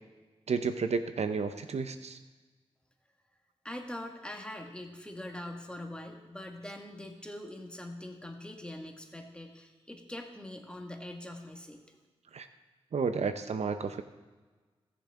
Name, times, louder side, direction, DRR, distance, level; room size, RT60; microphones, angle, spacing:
voice 1, 0.5-2.2 12.3-12.5 12.9-14.0, right 5 dB, 75° right, 9 dB, 0.6 m, -31 dB
voice 2, 3.6-11.8, left 1 dB, 10° left, 2 dB, 1.8 m, -43 dB
17.5 x 7.0 x 3.7 m, 1.3 s
cardioid pair, 55°, 11 cm